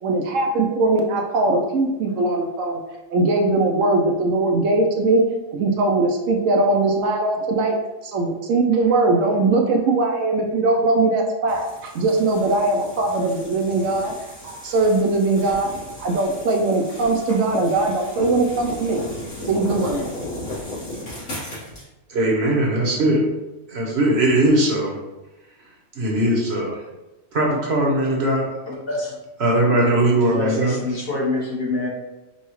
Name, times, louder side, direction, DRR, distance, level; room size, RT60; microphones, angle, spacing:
voice 1, 0.0-2.8 3.1-5.2 5.5-7.8 8.0-14.1 14.4-15.7 16.0-19.0 19.4-20.2, right 2 dB, 75° right, 2 dB, 0.9 m, -20 dB
sound 1, 11.5-21.9, left 1 dB, 60° left, 1.7 m, -35 dB
voice 2, 22.1-23.2 23.7-24.9 25.9-26.7 27.3-28.5 29.4-30.8, right 1 dB, 55° right, -2 dB, 1.1 m, -19 dB
voice 3, 28.7-29.2 30.3-31.9, left 2 dB, 45° left, -5 dB, 1.2 m, -26 dB
5.4 x 2.3 x 3.0 m, 1.0 s
omnidirectional pair, 1.4 m